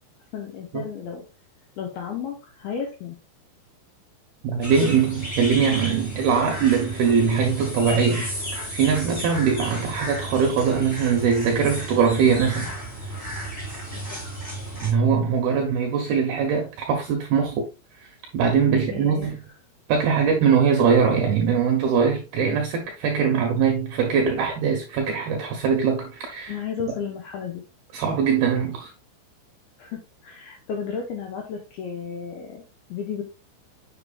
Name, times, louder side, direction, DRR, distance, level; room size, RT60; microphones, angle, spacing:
voice 1, 0.3-1.2 1.8-3.2 13.9-14.3 18.7-19.3 26.5-27.6 29.8-32.6 32.9-33.2, left 7 dB, 80° left, 2.2 m, -33 dB
voice 2, 4.4-8.3 8.7-12.7 14.8-17.7 18.3-19.4 19.9-26.6 27.9-28.9, right 6 dB, 80° right, 2.2 m, -21 dB
sound 1, 4.6-14.9, equal, 15° left, 3.3 m, -33 dB
8.0 x 6.7 x 2.3 m
omnidirectional pair, 5.7 m